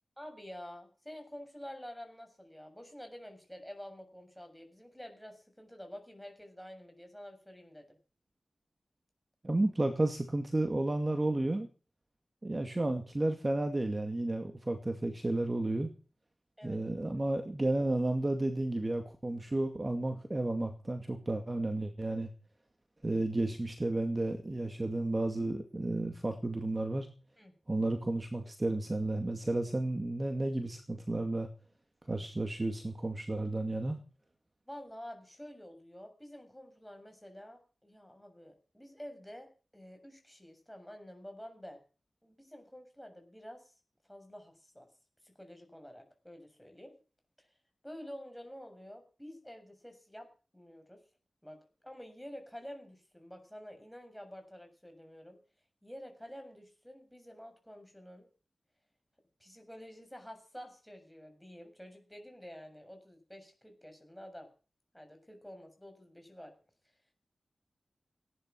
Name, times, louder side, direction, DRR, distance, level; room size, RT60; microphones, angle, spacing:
voice 1, 0.2-7.9 16.6-16.9 27.4-27.5 34.7-41.8 42.2-43.6 44.1-44.9 45.2-46.9 47.8-50.3 50.5-51.0 51.4-51.6 51.8-55.4 55.8-58.3 59.4-64.5 64.9-66.5, equal, 5° left, 4 dB, 7.1 m, -49 dB
voice 2, 9.4-11.7 12.4-15.9 16.6-22.3 23.0-27.1 27.7-31.5 32.1-34.0, right 2 dB, 30° right, 6 dB, 2.2 m, -32 dB
17.5 x 11.5 x 6.2 m, 0.37 s
wide cardioid pair, 60°, 0 cm